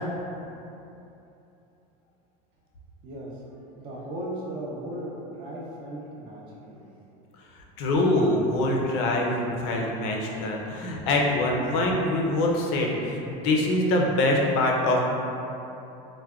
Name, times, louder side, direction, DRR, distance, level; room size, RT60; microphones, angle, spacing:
voice 1, 3.0-3.4 3.7-6.8, right 1 dB, 25° right, -4 dB, 0.4 m, -37 dB
voice 2, 7.8-15.0, left 1 dB, 45° left, -1 dB, 0.4 m, -24 dB
4.5 x 2.1 x 2.3 m, 2.9 s
supercardioid pair, 175°, 19 cm